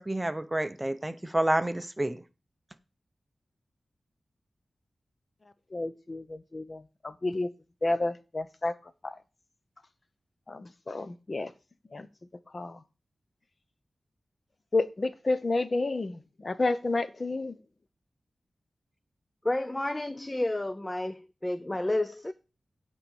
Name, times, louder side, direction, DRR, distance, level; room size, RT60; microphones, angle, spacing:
voice 1, 0.0-2.2, right 1 dB, 15° right, 0.7 m, -29 dB
voice 2, 5.7-6.8 7.2-7.5 7.8-8.7 9.0-9.1 10.5-11.5 11.9-12.1 12.5-12.8 14.7-17.5, left 2 dB, 40° left, 0.8 m, -30 dB
voice 3, 19.4-22.3, left 1 dB, 20° left, 0.4 m, -30 dB
8.8 x 4.7 x 7.0 m
wide cardioid pair, 95°, 0 cm